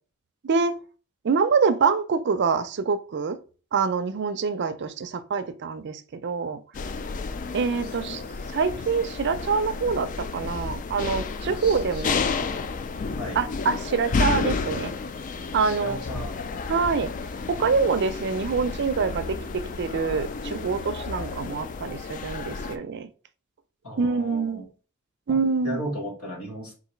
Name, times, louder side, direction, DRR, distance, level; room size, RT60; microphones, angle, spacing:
voice 1, 0.4-0.8 1.2-3.4 3.7-6.6 7.5-8.2 8.5-12.2 13.4-14.9 15.5-16.0 16.7-17.1 17.5-23.1 24.0-24.6 25.3-25.8, right 5 dB, 55° right, 0.4 m, -25 dB
sound 1, 6.7-22.8, left 4 dB, 35° left, 0.3 m, -31 dB
voice 2, 7.7-8.3 11.6-12.6 13.2-13.4 15.6-16.4 23.8-24.7 25.3-25.4 25.6-26.7, equal, 80° left, 1.7 m, -36 dB
3.9 x 2.6 x 4.3 m
head